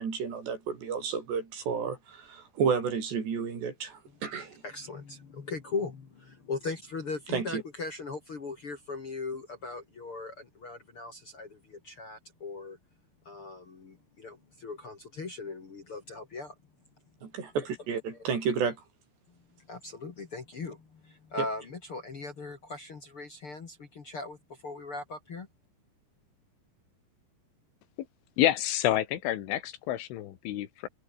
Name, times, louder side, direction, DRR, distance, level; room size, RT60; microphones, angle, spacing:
voice 1, 0.0-4.6 7.3-7.6 17.2-18.8, right 6 dB, 65° right, 6.9 m, -31 dB
voice 2, 4.6-12.8 13.2-16.6 17.6-17.7 19.3-25.5, left 3 dB, 40° left, 2.2 m, -39 dB
voice 3, 28.4-30.9, left 13 dB, 85° left, 4.2 m, -28 dB
omnidirectional pair, 5.4 m